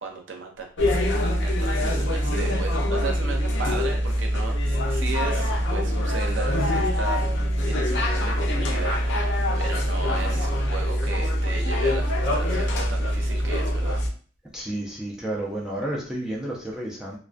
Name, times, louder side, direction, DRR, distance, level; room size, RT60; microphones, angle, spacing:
voice 1, 0.0-14.0, right 4 dB, 75° right, 2 dB, 0.6 m, -35 dB
sound 1, 0.8-14.1, equal, 65° left, 0.5 m, -24 dB
voice 2, 14.5-17.2, right 1 dB, 5° right, -4 dB, 0.4 m, -31 dB
2.3 x 2.2 x 2.4 m, 0.42 s
head